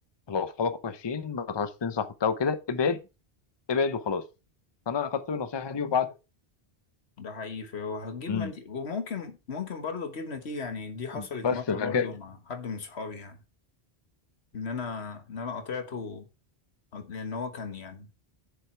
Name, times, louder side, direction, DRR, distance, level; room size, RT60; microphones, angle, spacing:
voice 1, 0.3-3.0 3.7-4.2 4.9-6.1 8.3-8.5 11.2-12.1, left 5 dB, 30° left, 0.6 m, -28 dB
voice 2, 7.2-13.4 14.5-16.3 16.9-18.1, left 5 dB, 90° left, 1.6 m, -36 dB
7.4 x 7.0 x 4.5 m
omnidirectional pair, 1.1 m